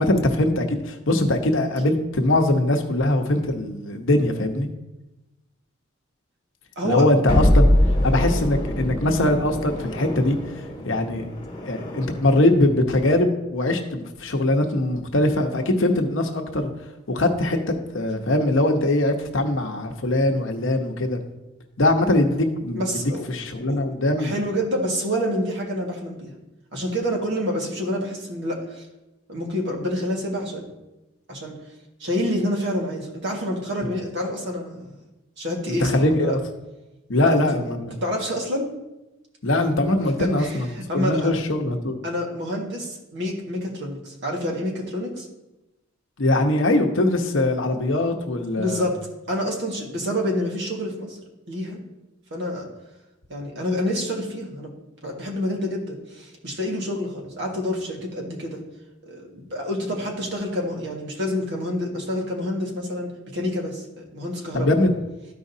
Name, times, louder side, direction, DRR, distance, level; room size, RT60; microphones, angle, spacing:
voice 1, 0.0-4.7 6.8-7.7 8.0-10.4 10.8-11.2 11.7-16.7 17.1-21.2 21.8-23.0 23.3-24.4 35.8-36.4 37.1-37.9 39.4-40.7 40.9-42.0 46.2-48.9 64.5-64.9, left 1 dB, 70° left, 4 dB, 0.9 m, -21 dB
voice 2, 6.7-7.1 22.8-23.3 23.7-23.9 24.2-26.3 26.7-28.8 29.3-30.7 31.3-31.6 32.0-34.9 35.4-36.3 37.3-37.4 38.0-38.7 40.2-41.3 42.0-45.3 48.6-49.0 49.3-51.2 51.5-51.8 52.3-52.7 53.3-54.7 55.0-58.6 59.0-64.7, equal, 60° right, 0 dB, 1.7 m, -28 dB
sound 1, 7.3-12.4, left 1 dB, 25° left, 1.3 m, -23 dB
13.5 x 5.0 x 2.7 m, 1.0 s
head